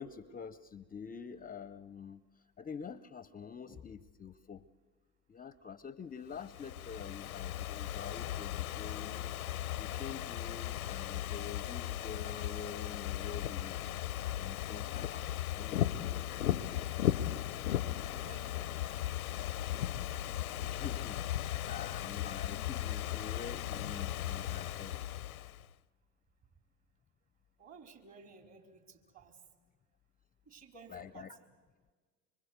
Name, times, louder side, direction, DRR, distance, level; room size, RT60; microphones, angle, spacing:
voice 1, 0.0-4.6 5.3-9.3 9.8-13.8 14.4-16.0 20.6-25.0 30.9-31.4, left 6 dB, 20° left, 17 dB, 0.7 m, -47 dB
Ocean / Fireworks, 6.4-25.7, left 12 dB, 90° left, 0.7 m, -37 dB
voice 2, 18.2-18.9 27.6-29.4 30.4-31.5, right 4 dB, 40° right, 5 dB, 4.8 m, -55 dB
25.5 x 25.0 x 8.2 m, 1.5 s
hypercardioid pair, 80°, 42 cm